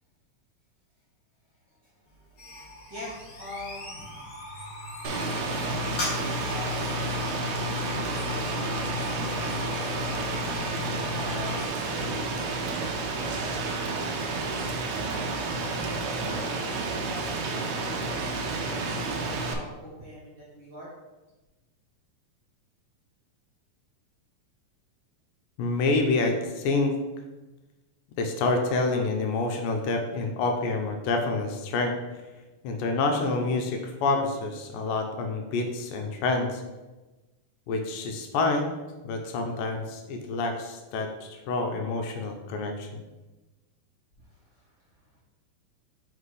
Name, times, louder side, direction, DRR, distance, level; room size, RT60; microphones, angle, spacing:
voice 1, 1.7-5.1 5.9-10.4 11.1-14.7 15.4-20.9 44.2-45.2, equal, 40° right, -8 dB, 1.8 m, -45 dB
sound 1, 2.1-11.7, left 3 dB, 50° left, 1.1 m, -37 dB
Rain, 5.0-19.5, right 3 dB, 85° right, 1.5 m, -31 dB
voice 2, 25.6-27.0 28.2-32.2 32.6-36.6 37.7-38.8 39.0-43.0, left 3 dB, 85° left, 3 dB, 2.2 m, -27 dB
5.1 x 4.2 x 4.8 m, 1.1 s
omnidirectional pair, 4.0 m